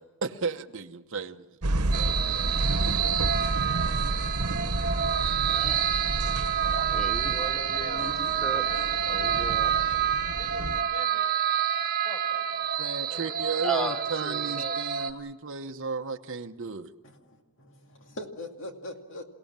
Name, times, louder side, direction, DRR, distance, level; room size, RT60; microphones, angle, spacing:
voice 1, 0.0-1.5 1.9-3.2 12.8-16.9, right 4 dB, 60° right, 6 dB, 1.0 m, -35 dB
sound 1, 1.6-10.8, right 2 dB, 85° right, 1.1 m, -31 dB
sound 2, 1.9-15.1, right 8 dB, 40° right, 2.2 m, -28 dB
voice 2, 5.5-6.0 6.9-8.6 9.0-9.7 13.6-14.8, right 1 dB, 5° left, 7 dB, 1.2 m, -36 dB
voice 3, 6.5-8.1 8.6-11.3 11.7-12.7 13.1-13.3, equal, 20° left, 3 dB, 5.6 m, -46 dB
voice 4, 17.0-19.2, left 1 dB, 60° left, 4 dB, 2.4 m, -42 dB
28.5 x 17.5 x 7.5 m, 1.1 s
head